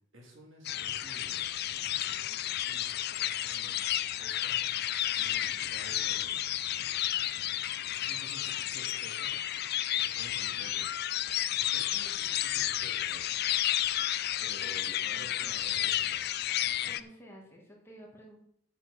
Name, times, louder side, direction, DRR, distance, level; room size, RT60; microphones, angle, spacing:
voice 1, 0.1-1.5 2.4-4.6 5.2-6.4 7.9-9.3 9.9-10.9 11.2-13.4 14.4-16.4, right 1 dB, 75° right, 0 dB, 3.1 m, -52 dB
sound 1, 0.6-17.0, left 12 dB, 50° left, 0.4 m, -32 dB
voice 2, 15.1-15.5 16.8-18.5, equal, 10° left, -2 dB, 2.4 m, -52 dB
7.9 x 6.8 x 7.3 m, 0.68 s
head